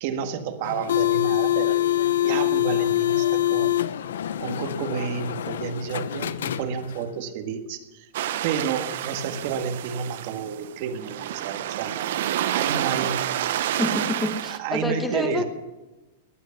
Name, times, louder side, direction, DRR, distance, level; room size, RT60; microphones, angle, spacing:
voice 1, 0.0-1.8 2.2-3.9 4.4-8.1 8.4-12.1 12.5-13.2 14.5-15.4, right 7 dB, 50° right, 7 dB, 1.7 m, -30 dB
sound 1, 0.6-7.1, left 13 dB, 85° left, 0.7 m, -25 dB
sound 2, 8.1-14.6, right 12 dB, 65° right, 0.8 m, -29 dB
voice 2, 13.8-15.4, left 1 dB, 5° left, 6 dB, 1.4 m, -27 dB
18.5 x 11.0 x 5.9 m, 1.1 s
supercardioid pair, 155°, 0 cm